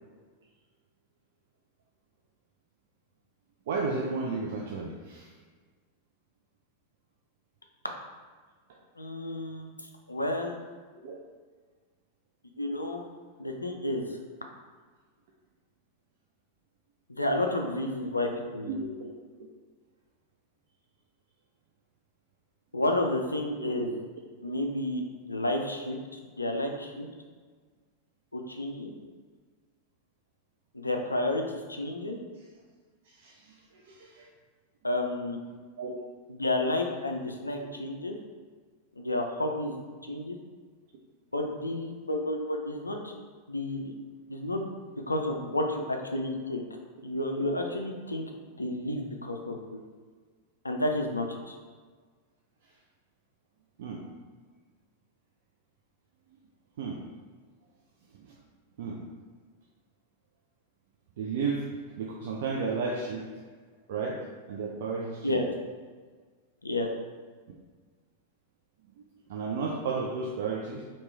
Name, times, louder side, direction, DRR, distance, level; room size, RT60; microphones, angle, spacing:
voice 1, 3.7-5.3 11.0-11.2 18.7-19.1 23.6-23.9 33.0-34.3 35.8-36.0 47.4-47.5 52.6-52.7 53.8-54.3 56.8-57.0 58.1-58.3 58.8-59.0 61.2-61.6 61.9-63.3 63.9-64.2 64.5-65.4 69.0-69.1 69.3-70.8, right 4 dB, 55° right, -2 dB, 0.4 m, -33 dB
voice 2, 9.0-9.7 10.1-10.6 12.6-13.0 13.4-14.1 17.1-18.8 22.7-23.9 24.4-25.0 25.3-27.1 28.3-28.9 30.7-32.2 34.8-35.4 36.3-38.2 39.0-39.8 40.0-40.4 41.3-43.1 43.5-43.9 44.3-44.7 45.1-46.7 47.0-48.2 48.6-49.8 50.6-51.6 65.2-65.4 66.6-66.9, left 1 dB, 80° left, 3 dB, 0.4 m, -31 dB
2.9 x 2.9 x 3.2 m, 1.5 s
figure-of-eight pair, 90°, 0 cm